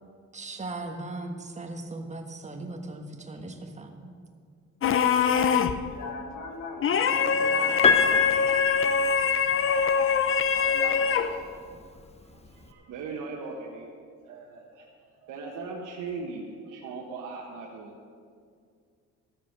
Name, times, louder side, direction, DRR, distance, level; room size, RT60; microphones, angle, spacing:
voice 1, 0.3-4.1, right 2 dB, 25° right, 3 dB, 1.4 m, -38 dB
sound 1, 4.8-5.9 6.8-11.4, left 6 dB, 45° left, 0.7 m, -24 dB
voice 2, 5.9-8.2 10.5-11.3, left 3 dB, 80° left, 1 dB, 2.2 m, -40 dB
voice 3, 6.5-8.3 8.7-9.6 10.6-10.7 11.1-11.5 11.9-13.9 14.2-14.9 15.2-18.1, right 4 dB, 80° right, -2 dB, 1.3 m, -41 dB
Piano, 7.8-9.8 11.1-11.2, left 5 dB, 20° left, 0.9 m, -25 dB
13.0 x 7.1 x 6.4 m, 2.2 s
cardioid pair, 90°, 30 cm